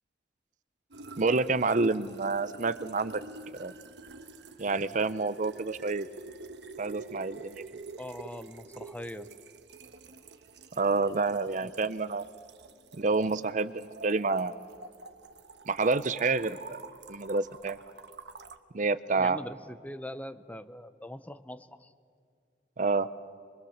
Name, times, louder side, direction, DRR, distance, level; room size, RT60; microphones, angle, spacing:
sound 1, 0.9-18.6, right 3 dB, 65° right, 1.1 m, -47 dB
voice 1, 1.2-3.2 3.5-3.7 4.6-6.1 6.8-7.6 10.8-12.2 13.0-14.5 15.7-16.8 17.1-17.8 18.7-19.4 22.8-23.1, right 3 dB, 45° right, 15 dB, 0.6 m, -28 dB
voice 2, 8.0-9.3 11.6-11.7 19.2-21.9, left 1 dB, 10° left, 12 dB, 0.6 m, -42 dB
24.5 x 23.0 x 7.2 m, 2.4 s
head